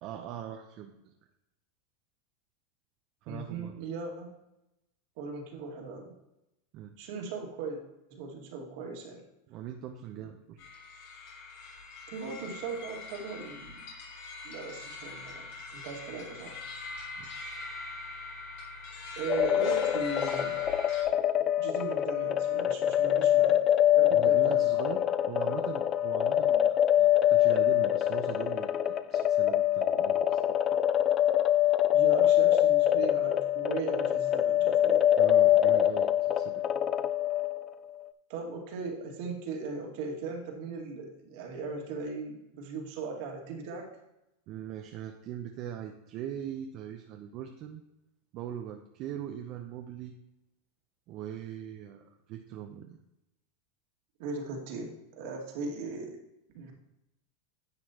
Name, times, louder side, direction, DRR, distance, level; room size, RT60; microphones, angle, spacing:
voice 1, 0.0-1.1 3.2-3.8 6.7-6.9 9.5-10.6 17.2-17.3 24.1-30.4 35.2-36.7 44.5-47.8 48.3-50.1 51.1-53.0, right 10 dB, 45° right, 3 dB, 0.8 m, -41 dB
voice 2, 3.3-4.3 5.2-6.1 7.0-7.8 8.1-9.2 12.1-13.8 14.4-16.6 19.2-20.6 21.6-23.6 24.0-24.7 31.9-35.1 38.3-43.9 54.2-56.2 56.5-56.7, right 4 dB, 60° right, 1 dB, 2.2 m, -38 dB
sound 1, 10.6-21.0, left 3 dB, 65° left, 3.1 m, -42 dB
sound 2, 19.3-37.7, left 11 dB, 30° left, 0.4 m, -25 dB
10.5 x 7.2 x 3.0 m, 0.90 s
supercardioid pair, 135°, 0 cm